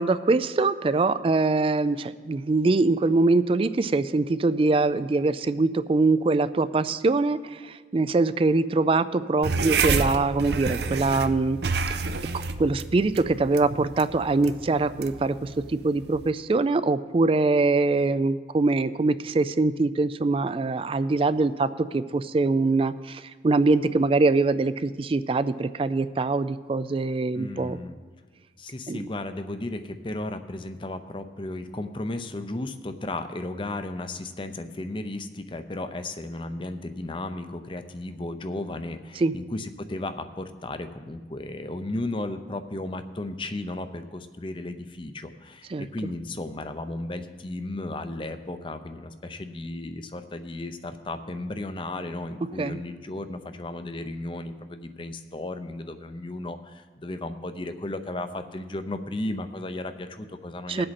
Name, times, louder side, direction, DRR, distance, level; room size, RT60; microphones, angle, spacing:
voice 1, 0.0-11.6 11.9-12.0 12.6-21.7 21.9-27.8 28.9-29.1 39.2-39.3 45.7-45.9 52.6-52.8 60.7-60.9, right 3 dB, 30° right, 14 dB, 0.3 m, -23 dB
sound 1, 9.4-16.3, right 4 dB, 70° right, 0.6 m, -29 dB
voice 2, 27.3-28.0 28.6-60.9, left 2 dB, 30° left, 9 dB, 0.6 m, -34 dB
19.0 x 7.7 x 4.2 m, 1.4 s
head